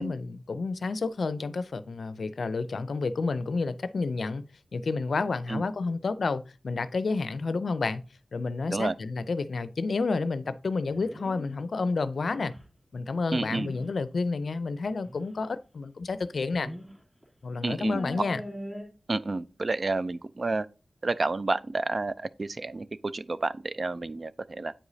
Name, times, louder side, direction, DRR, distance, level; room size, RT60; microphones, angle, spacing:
voice 1, 0.0-4.4 4.7-8.0 8.3-12.5 12.9-16.7 17.4-18.4, left 4 dB, 75° left, 0.5 m, -30 dB
sound 1, 10.8-11.5 12.2-12.6 13.3-13.8 15.1-15.2 16.3-16.9 17.2-17.3 17.8-18.8, equal, 5° right, 2.6 m, -41 dB
voice 2, 13.3-13.7 17.6-18.0 19.1-20.7 21.0-24.7, right 3 dB, 50° right, 0.4 m, -30 dB
8.7 x 4.9 x 2.7 m
wide cardioid pair, 75°, 0 cm